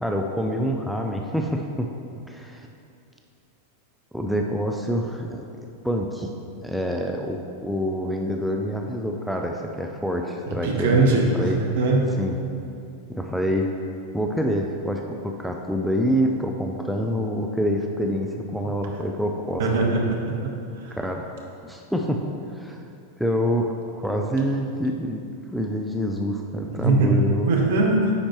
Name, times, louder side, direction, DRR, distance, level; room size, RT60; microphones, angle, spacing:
voice 1, 0.0-1.9 2.3-2.7 4.1-5.4 5.8-6.3 6.6-11.6 12.2-12.4 13.1-13.7 14.1-19.7 20.9-21.3 21.6-22.8 23.2-25.2 25.5-27.6, equal, ahead, 1 dB, 0.4 m, -26 dB
voice 2, 10.6-11.3 11.8-12.1 19.6-20.2 20.4-20.5 20.8-20.9 26.7-28.1, right 3 dB, 55° right, 0 dB, 1.0 m, -20 dB
9.5 x 4.3 x 3.0 m, 2.5 s
figure-of-eight pair, 90°, 0 cm